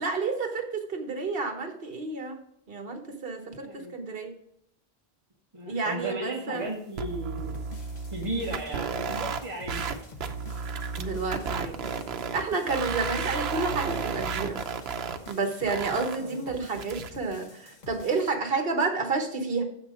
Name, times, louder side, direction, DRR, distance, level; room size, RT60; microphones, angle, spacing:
voice 1, 0.0-2.4 2.7-4.3 5.7-6.7 11.0-11.8 12.3-14.6 15.3-19.6, right 4 dB, 60° right, 5 dB, 1.4 m, -30 dB
voice 2, 3.5-3.9 5.5-7.6 8.1-9.9 16.1-16.5, right 1 dB, 30° right, -1 dB, 1.1 m, -35 dB
sound 1, 7.0-9.4 9.7-9.9 10.2-12.4 12.7-15.3 15.7-16.2 16.8-17.1, right 5 dB, 75° right, 0.9 m, -32 dB
sound 2, 7.4-18.3, left 2 dB, 45° left, 1.1 m, -48 dB
7.7 x 6.0 x 5.0 m, 0.72 s
omnidirectional pair, 1.1 m